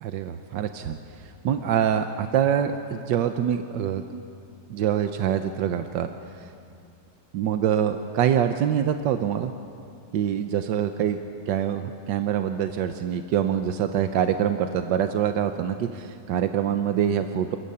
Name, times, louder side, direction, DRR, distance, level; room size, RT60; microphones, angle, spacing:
voice 1, 0.0-4.2 4.7-6.1 6.4-6.5 7.3-9.5 10.1-11.2 11.5-17.6, right 9 dB, 90° right, 7 dB, 1.5 m, -25 dB
28.0 x 14.5 x 8.5 m, 2.5 s
omnidirectional pair, 1.9 m